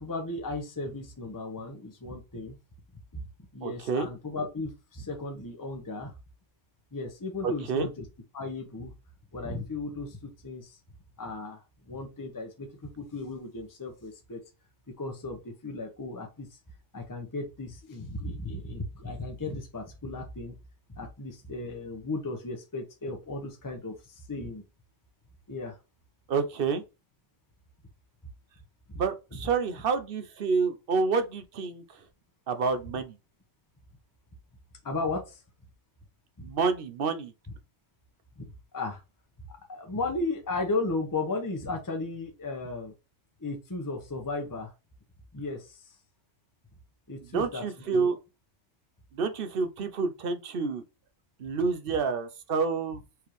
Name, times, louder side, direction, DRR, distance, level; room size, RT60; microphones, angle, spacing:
voice 1, 0.0-2.6 3.1-3.2 3.5-6.1 6.9-8.0 8.3-8.9 9.3-10.8 11.2-14.4 15.0-16.5 16.9-20.6 20.9-24.6 25.5-25.8 28.9-29.0 29.3-29.4 34.8-35.4 36.4-36.5 38.4-38.5 38.7-39.0 39.7-42.9 43.4-44.7 45.3-45.9 47.1-48.1, left 3 dB, 20° left, 0.9 m, -35 dB
voice 2, 3.6-4.1 7.4-7.9 26.3-26.8 28.9-31.8 32.5-33.2 36.4-37.3 47.3-48.2 49.1-50.8 51.4-53.0, right 5 dB, 55° right, 0.8 m, -28 dB
4.6 x 3.5 x 3.1 m
omnidirectional pair, 1.2 m